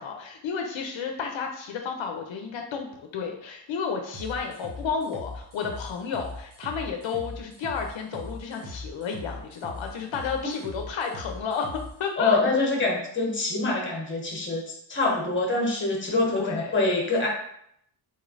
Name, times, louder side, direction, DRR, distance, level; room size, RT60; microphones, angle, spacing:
voice 1, 0.0-12.6 16.3-16.8, left 6 dB, 85° left, 3 dB, 0.6 m, -32 dB
sound 1, 4.1-11.9, left 2 dB, 45° right, 1.0 m, -40 dB
voice 2, 12.2-17.3, left 3 dB, 25° left, -1 dB, 1.1 m, -25 dB
4.1 x 3.1 x 2.5 m, 0.71 s
wide cardioid pair, 95°, 45 cm